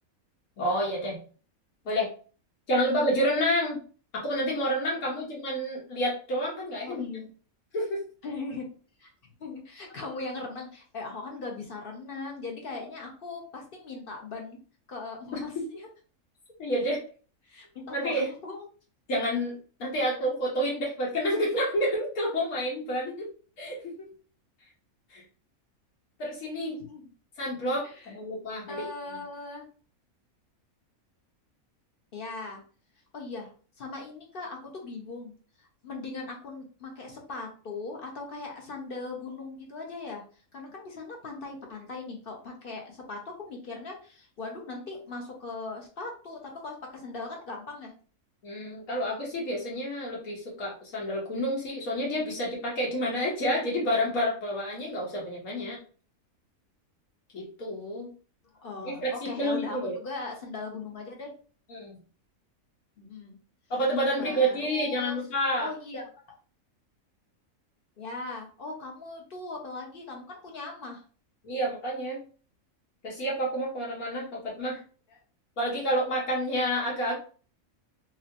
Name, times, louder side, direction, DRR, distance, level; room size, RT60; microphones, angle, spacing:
voice 1, 0.6-1.2 1.8-2.1 2.7-3.8 4.1-7.0 7.7-8.0 16.6-17.0 17.9-18.2 19.1-19.5 19.8-23.3 23.6-24.1 25.1-25.2 26.2-26.8 27.4-28.9 48.4-55.8 57.3-58.1 58.8-59.9 61.7-61.9 63.7-65.7 71.4-72.2 73.0-74.8 75.6-77.1, equal, 80° left, -4 dB, 1.4 m, -29 dB
voice 2, 6.9-7.3 8.2-8.7 9.0-9.1 9.4-14.6 14.9-15.9 17.4-18.6 26.6-27.1 27.8-28.1 28.7-29.6 32.1-32.6 33.1-40.2 40.5-47.9 58.5-61.3 63.0-63.4 64.2-65.2 65.6-66.1 68.0-71.0, left 3 dB, 50° left, 1 dB, 0.7 m, -39 dB
3.0 x 2.7 x 2.5 m, 0.39 s
omnidirectional pair, 1.5 m